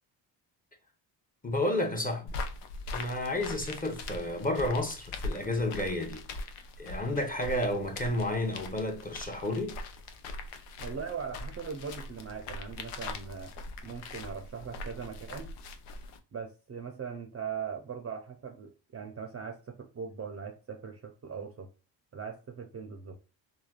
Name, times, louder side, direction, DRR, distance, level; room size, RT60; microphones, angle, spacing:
voice 1, 1.4-2.4 2.9-6.2 6.8-9.8, left 1 dB, 15° left, 0.8 m, -31 dB
sound 1, 2.3-16.2, left 2 dB, 90° left, 0.6 m, -41 dB
voice 2, 10.8-13.5 13.8-15.5 16.3-21.7 22.1-23.2, right 6 dB, 30° right, 0.5 m, -40 dB
3.3 x 2.2 x 2.3 m
supercardioid pair, 60°, 50 cm